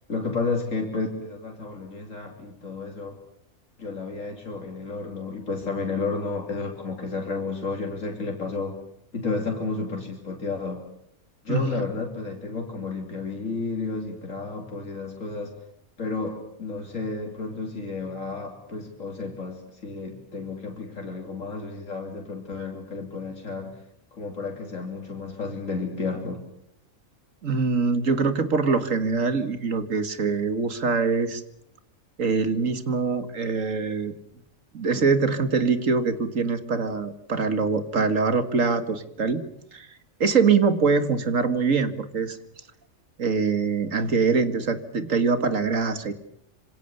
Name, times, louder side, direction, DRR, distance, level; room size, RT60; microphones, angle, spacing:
voice 1, 0.1-3.2 3.8-8.8 9.1-10.8 11.4-15.5 16.0-23.8 24.1-26.4, left 3 dB, 75° left, 1 dB, 3.5 m, -31 dB
voice 2, 27.4-31.4 32.2-34.1 34.7-39.4 39.7-39.9 40.2-42.4 43.2-46.1, right 4 dB, 75° right, 10 dB, 2.3 m, -23 dB
26.5 x 26.0 x 6.9 m, 0.72 s
omnidirectional pair, 1.4 m